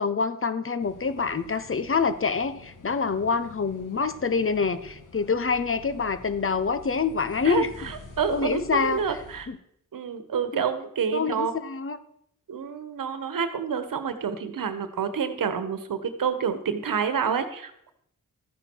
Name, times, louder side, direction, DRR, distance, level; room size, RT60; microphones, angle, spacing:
voice 1, 0.0-7.7 8.3-9.0 9.5-9.6 10.5-10.6 11.1-12.0, left 5 dB, 40° left, 12 dB, 1.0 m, -26 dB
sound 1, 0.8-9.5, left 2 dB, 65° left, 2.2 m, -47 dB
voice 2, 7.4-9.5 9.9-11.5 12.5-17.9, right 7 dB, 75° right, 10 dB, 1.3 m, -28 dB
13.0 x 9.6 x 4.7 m, 0.73 s
cardioid pair, 75°, 34 cm